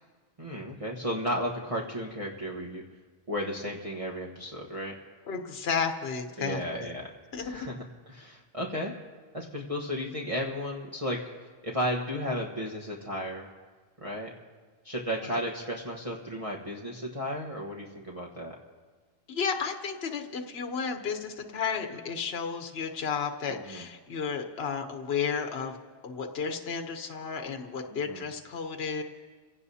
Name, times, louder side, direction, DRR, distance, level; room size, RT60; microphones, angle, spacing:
voice 1, 0.4-2.8 3.3-4.9 6.4-7.1 7.4-8.9 9.3-11.2 11.6-13.5 14.0-14.3 14.8-18.5 23.7-23.8 27.9-28.2, equal, 35° right, -3 dB, 1.4 m, -34 dB
voice 2, 5.3-6.9 7.3-7.7 15.2-15.4 19.3-25.8 26.0-29.0, left 6 dB, 75° left, 4 dB, 1.2 m, -33 dB
28.0 x 17.0 x 2.8 m, 1.4 s
omnidirectional pair, 1.1 m